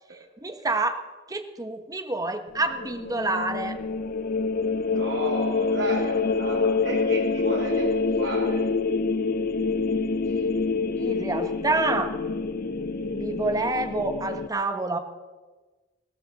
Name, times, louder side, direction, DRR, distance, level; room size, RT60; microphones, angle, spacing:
voice 1, 0.4-1.0 1.3-3.7 11.0-12.1 13.1-15.0, right 2 dB, 20° right, 8 dB, 1.0 m, -27 dB
sound 1, 2.5-14.5, left 4 dB, 50° left, 0.5 m, -26 dB
voice 2, 4.9-8.6, right 2 dB, 75° right, -3 dB, 2.5 m, -33 dB
18.0 x 14.0 x 4.1 m, 1.3 s
head